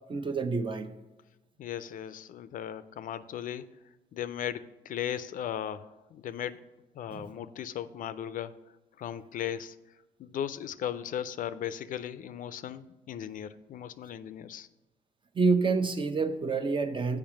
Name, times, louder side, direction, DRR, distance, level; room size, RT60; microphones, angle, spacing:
voice 1, 0.1-0.9 7.1-7.2 15.3-17.2, right 4 dB, 35° right, 9 dB, 0.7 m, -27 dB
voice 2, 1.6-3.7 4.1-6.6 6.9-8.6 9.0-9.8 10.2-14.7, left 10 dB, 60° left, 13 dB, 0.4 m, -37 dB
7.1 x 5.0 x 6.1 m, 1.0 s
supercardioid pair, 70°, 15 cm